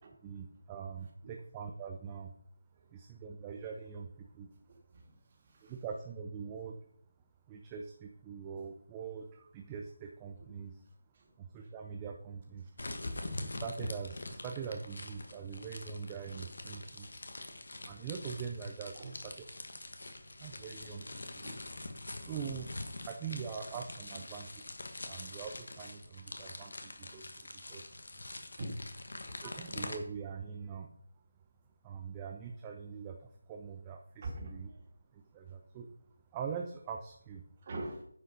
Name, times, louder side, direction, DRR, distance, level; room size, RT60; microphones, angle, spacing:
voice 1, 0.2-2.3 2.9-4.5 5.6-6.8 7.5-10.8 11.4-12.7 13.4-17.2 17.9-19.3 19.7-19.9 20.4-21.4 22.2-22.7 23.0-24.6 24.9-28.0 29.4-30.9 31.8-34.7 35.1-35.9 36.3-37.4, right 6 dB, 15° right, 2 dB, 0.6 m, -43 dB
voice 2, 4.7-5.1 5.4-5.7 10.4-10.5 11.1-11.3 13.2-13.3 17.0-17.1 18.9-19.2 21.4-21.6 22.2-22.3 28.6-28.8 34.2-34.8 37.6-38.0, right 2 dB, 30° right, 1 dB, 2.4 m, -43 dB
sound 1, 12.8-30.0, left 2 dB, 65° left, 1.6 m, -44 dB
9.9 x 5.3 x 5.2 m, 0.67 s
figure-of-eight pair, 165°, 0 cm